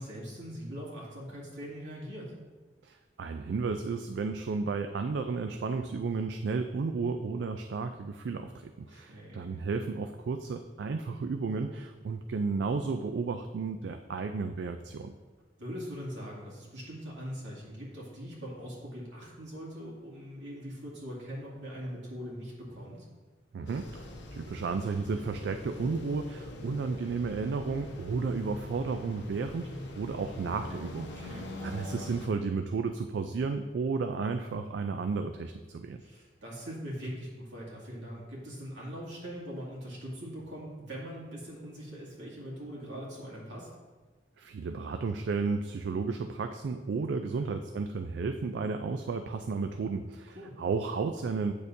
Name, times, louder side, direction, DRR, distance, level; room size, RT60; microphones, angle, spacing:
voice 1, 0.0-2.3 8.9-9.5 15.6-23.1 26.5-26.7 31.1-31.5 36.0-43.7 47.1-47.5 50.3-50.5, equal, 90° right, -5 dB, 2.2 m, -42 dB
voice 2, 2.8-15.1 23.5-36.0 44.4-51.5, right 4 dB, 70° right, 7 dB, 0.3 m, -33 dB
sound 1, 23.7-32.3, left 1 dB, 80° left, 0.9 m, -43 dB
8.5 x 6.4 x 2.7 m, 1.3 s
head